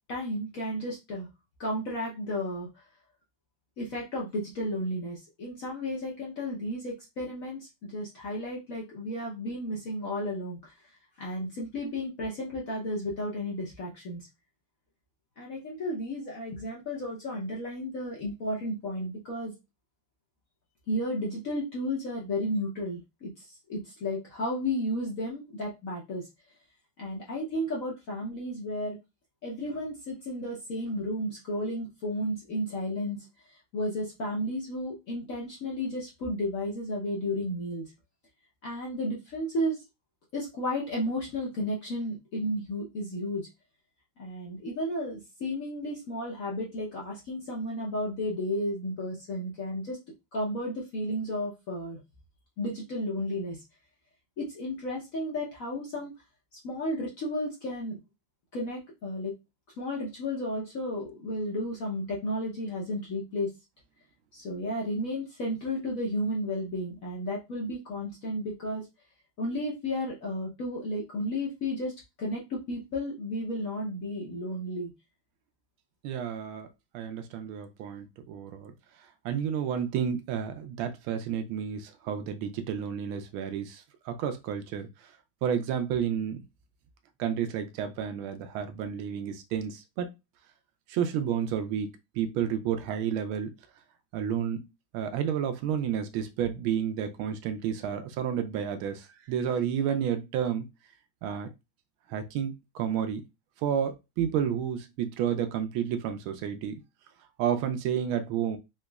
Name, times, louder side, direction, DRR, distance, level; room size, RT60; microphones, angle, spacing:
voice 1, 0.1-1.3 1.6-2.8 3.8-10.7 11.2-14.3 15.4-19.5 20.9-26.3 27.0-29.0 29.4-33.3 33.7-37.9 38.6-39.8 40.3-43.5 44.2-50.0 50.3-52.0 52.6-53.6 54.4-56.1 56.6-58.0 58.5-59.4 59.8-63.5 64.3-68.9 69.4-71.9 72.2-74.9, left 1 dB, 60° left, 0.9 m, -33 dB
voice 2, 76.0-76.7 76.9-78.7 79.2-85.1 85.4-86.4 87.2-90.1 90.9-93.5 94.1-94.7 94.9-100.7 101.2-101.5 102.1-103.3 103.6-106.8 107.4-108.6, right 8 dB, 80° right, 1.4 m, -31 dB
4.0 x 2.8 x 2.3 m
omnidirectional pair, 2.3 m